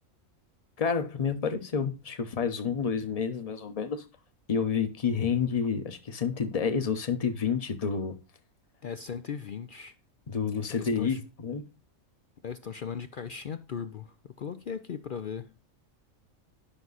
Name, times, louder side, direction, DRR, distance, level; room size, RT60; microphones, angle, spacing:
voice 1, 0.8-4.0 4.5-8.2 10.3-11.6, left 6 dB, 30° left, 0.9 m, -29 dB
voice 2, 8.8-9.9 10.7-11.2 12.4-15.5, left 7 dB, 65° left, 0.5 m, -38 dB
10.0 x 6.1 x 4.0 m
omnidirectional pair, 1.5 m